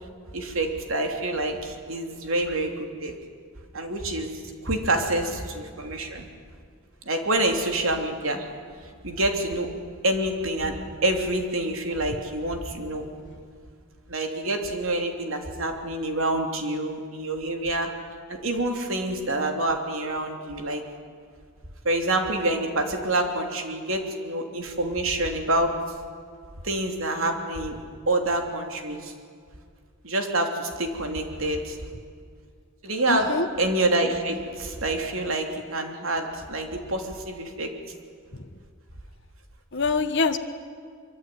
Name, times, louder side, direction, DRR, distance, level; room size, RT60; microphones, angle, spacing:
voice 1, 0.3-3.2 3.7-4.3 4.6-6.3 7.0-8.4 9.0-9.8 10.0-13.1 14.1-17.9 18.3-20.8 21.8-25.8 26.6-27.8 28.1-29.1 30.0-31.8 32.8-37.7, right 1 dB, 70° right, 4 dB, 3.3 m, -27 dB
voice 2, 33.1-33.5 38.3-38.5 39.7-40.4, left 4 dB, 55° left, 6 dB, 1.3 m, -25 dB
24.5 x 24.0 x 9.5 m, 2.1 s
head